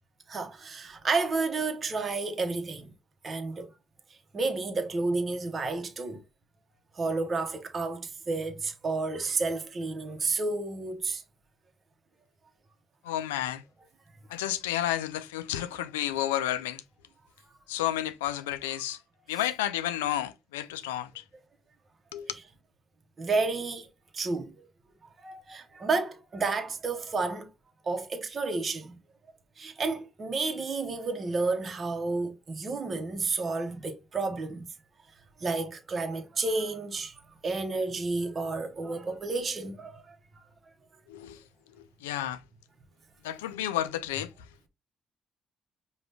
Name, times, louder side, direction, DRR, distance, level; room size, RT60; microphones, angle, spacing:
voice 1, 0.3-2.9 3.2-3.7 4.3-6.2 6.9-11.2 23.2-23.9 24.1-24.7 25.2-27.5 27.8-29.0 29.6-34.7 35.4-40.5, right 3 dB, 45° right, 0.9 m, -31 dB
voice 2, 13.0-13.6 14.3-16.8 17.7-19.0 19.3-21.2 22.1-22.3 41.1-41.4 41.8-42.4 43.2-44.3, left 12 dB, 90° left, 0.3 m, -31 dB
5.1 x 2.3 x 3.3 m
hypercardioid pair, 45°, 0 cm